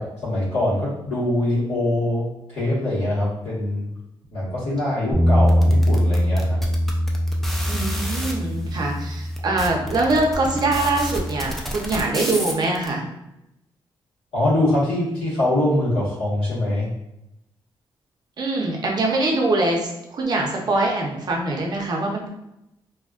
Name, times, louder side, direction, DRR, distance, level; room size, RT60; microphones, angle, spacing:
voice 1, 0.2-3.9 4.3-6.6 14.3-16.9, left 1 dB, 90° left, -8 dB, 1.4 m, -23 dB
Bass guitar, 5.1-11.4, equal, 25° left, 0.9 m, -22 dB
sound 1, 5.5-8.3 9.0-9.1 9.3-12.9, equal, 5° left, 0.4 m, -30 dB
voice 2, 7.7-13.0 18.4-22.3, right 2 dB, 45° right, 0 dB, 0.6 m, -23 dB
2.7 x 2.3 x 2.4 m, 0.86 s
cardioid pair, 130°, 9 cm